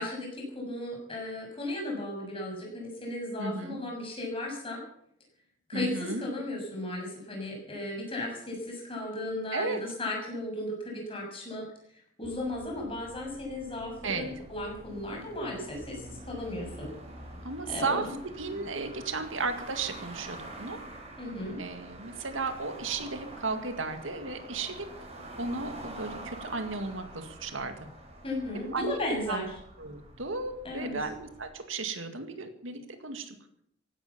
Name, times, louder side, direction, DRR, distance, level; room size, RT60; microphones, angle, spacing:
voice 1, 0.0-4.8 5.7-11.7 12.2-16.9 17.7-18.1 21.2-21.6 28.2-29.5 30.6-31.0, left 1 dB, 30° left, 0 dB, 6.7 m, -35 dB
voice 2, 3.4-3.8 5.7-6.2 9.5-9.8 14.0-14.3 17.4-20.8 21.6-24.9 25.4-27.8 28.7-29.0 29.3-29.4 29.8-33.4, right 3 dB, 80° right, 7 dB, 2.1 m, -34 dB
sound 1, 12.2-31.5, right 1 dB, 30° right, 5.0 m, -46 dB
16.0 x 12.5 x 7.3 m, 0.70 s
head